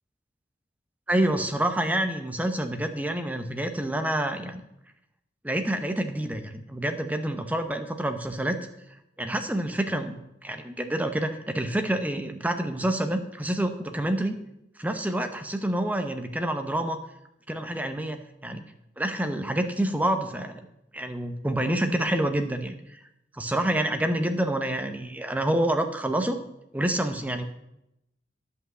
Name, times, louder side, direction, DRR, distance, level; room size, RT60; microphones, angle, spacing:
voice 1, 1.1-4.6 5.4-8.6 9.2-14.4 14.8-17.0 17.5-18.6 19.0-20.6 20.9-23.0 23.3-26.4 26.7-27.4, right 1 dB, 10° right, 6 dB, 0.8 m, -27 dB
10.0 x 5.6 x 7.7 m, 0.84 s
head